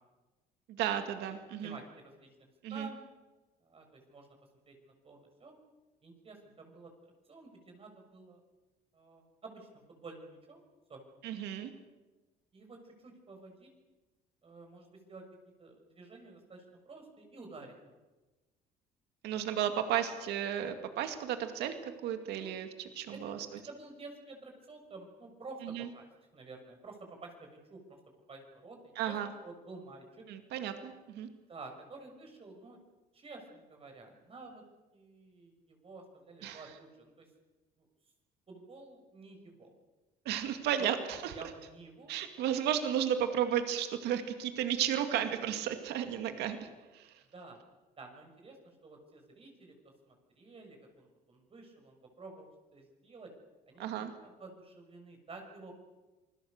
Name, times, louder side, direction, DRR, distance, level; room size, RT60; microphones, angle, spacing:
voice 1, 0.7-1.8 2.6-2.9 11.2-11.7 19.2-23.5 25.6-25.9 29.0-29.3 30.3-31.3 36.4-36.6 40.3-41.3 42.1-47.2 53.8-54.1, right 10 dB, 80° right, 7 dB, 2.3 m, -34 dB
voice 2, 1.6-2.3 2.7-3.0 3.6-4.3 4.7-5.5 6.0-6.9 7.3-8.4 8.9-10.6 10.9-11.0 12.5-13.7 14.4-15.2 15.6-17.9 19.3-19.4 22.4-22.6 23.1-23.3 23.7-25.6 25.9-26.1 26.3-28.0 28.3-29.1 29.4-30.0 31.5-32.8 33.1-34.6 34.9-37.3 37.8-37.9 38.5-39.7 40.8-40.9 41.3-42.2 47.3-47.6 48.0-49.7 50.1-53.3 53.7-55.8, right 3 dB, 35° right, 3 dB, 6.5 m, -50 dB
27.5 x 21.0 x 6.7 m, 1.2 s
cardioid pair, 110°, 17 cm